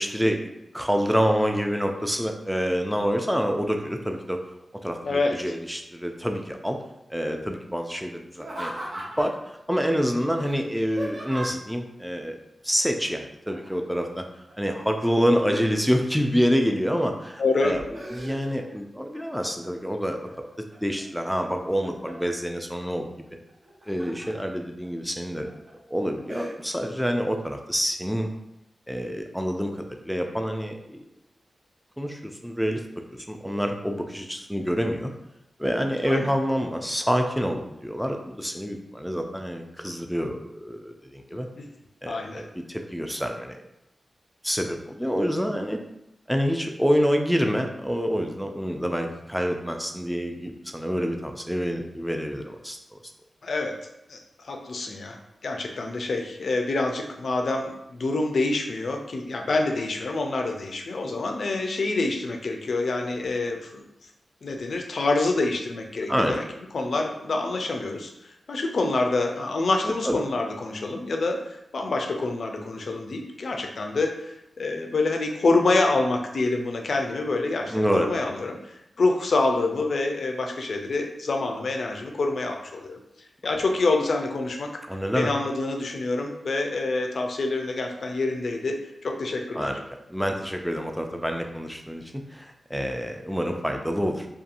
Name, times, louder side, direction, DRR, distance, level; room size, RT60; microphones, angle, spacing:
voice 1, 0.0-4.4 4.8-6.8 7.1-8.7 9.2-12.4 12.6-14.3 14.6-17.8 18.1-20.5 20.8-23.1 23.9-25.5 25.9-28.3 28.9-31.0 32.0-32.8 33.3-35.1 35.6-41.5 42.0-43.6 44.4-45.8 46.3-53.0 66.1-66.4 69.8-70.2 77.7-78.1 84.9-85.3 89.6-89.8 90.1-94.3, equal, ahead, 4 dB, 0.3 m, -27 dB
voice 2, 5.0-5.4 17.4-17.7 36.1-36.3 41.6-41.7 42.1-42.4 53.4-53.8 54.1-54.2 54.4-55.2 55.4-63.8 64.4-66.4 66.7-83.0 83.4-84.7 85.1-88.7 89.0-89.7, left 3 dB, 70° left, 3 dB, 0.4 m, -26 dB
Laughter, 8.3-9.4 10.4-11.7 13.5-13.9 14.3-15.9 16.4-17.1 17.5-18.8 19.1-19.7 20.2-21.0 21.5-22.3 23.5-24.3 24.8-24.9 25.4-25.7 26.3-26.5, right 1 dB, 65° right, 0.8 m, -38 dB
2.7 x 2.3 x 2.5 m, 0.86 s
cardioid pair, 65°, 0 cm